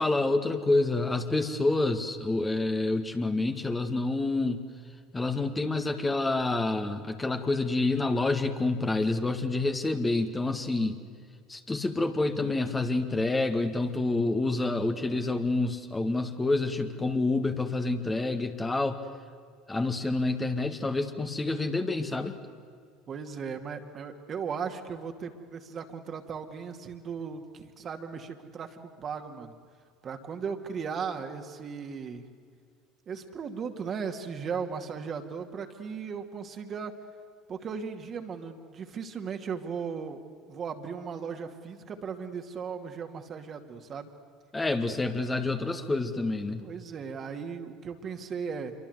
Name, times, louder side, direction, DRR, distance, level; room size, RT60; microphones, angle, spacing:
voice 1, 0.0-4.6 5.1-11.0 11.5-19.0 19.7-22.4 44.5-46.6, left 2 dB, 20° left, 6 dB, 2.0 m, -28 dB
voice 2, 23.1-29.5 30.0-32.2 33.1-37.0 37.5-44.1 44.6-44.8 46.6-48.7, right 6 dB, 40° right, 5 dB, 2.5 m, -37 dB
27.0 x 23.5 x 8.1 m, 2.1 s
hypercardioid pair, 70°, 0 cm